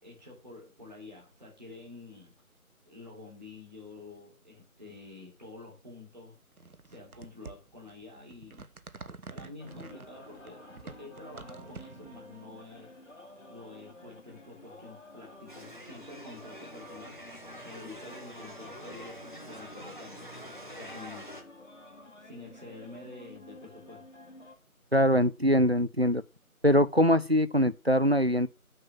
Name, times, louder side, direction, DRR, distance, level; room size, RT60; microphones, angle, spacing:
voice 1, 0.0-2.3 2.8-6.4 6.8-8.7 9.3-12.9 13.5-17.2 17.6-20.5 20.8-21.3 22.2-24.0, left 2 dB, 30° right, 3.3 m, -48 dB
sound 1, 6.5-12.2, right 4 dB, 75° right, 1.1 m, -47 dB
sound 2, 9.6-24.6, left 1 dB, 55° left, 2.2 m, -51 dB
sound 3, 15.5-21.4, equal, 35° left, 1.2 m, -46 dB
voice 2, 24.9-26.2 26.6-28.5, equal, 45° right, 0.4 m, -23 dB
6.5 x 5.8 x 7.1 m
figure-of-eight pair, 175°, 44 cm